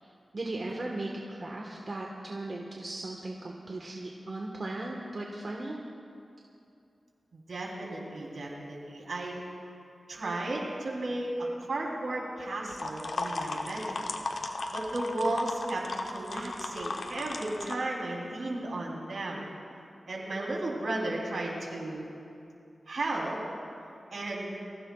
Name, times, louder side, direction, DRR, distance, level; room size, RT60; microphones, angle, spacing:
voice 1, 0.3-5.8, right 2 dB, 55° right, -1 dB, 1.5 m, -37 dB
voice 2, 7.3-9.4 10.1-14.1 14.7-19.5 20.1-22.0 22.9-23.4 24.1-24.6, right 2 dB, 75° right, -3 dB, 3.7 m, -34 dB
sound 1, 12.7-17.8, left 3 dB, 75° left, 0.9 m, -36 dB
26.0 x 16.0 x 2.4 m, 2.6 s
wide cardioid pair, 70°, 0 cm